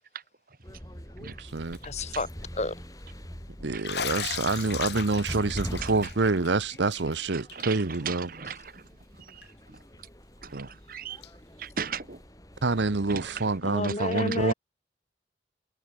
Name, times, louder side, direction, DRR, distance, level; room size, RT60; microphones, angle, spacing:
sound 1, 0.6-13.6, equal, 20° left, 7.8 m, -43 dB
voice 1, 1.2-1.8 3.6-8.3 10.5-10.7 12.6-14.5, right 3 dB, 85° right, 0.9 m, -27 dB
Bathtub (filling or washing), 1.6-2.0 2.3-2.4 3.8-7.2 7.5-7.6 7.9-8.0 9.4-9.5 11.2-11.3, left 7 dB, 70° left, 2.3 m, -36 dB
voice 2, 1.8-2.8 13.6-14.5, left 2 dB, 40° left, 3.1 m, -31 dB
voice 3, 8.0-8.8 10.4-11.2 11.6-12.2 13.1-13.2 13.8-14.2, right 6 dB, 50° right, 1.4 m, -37 dB
head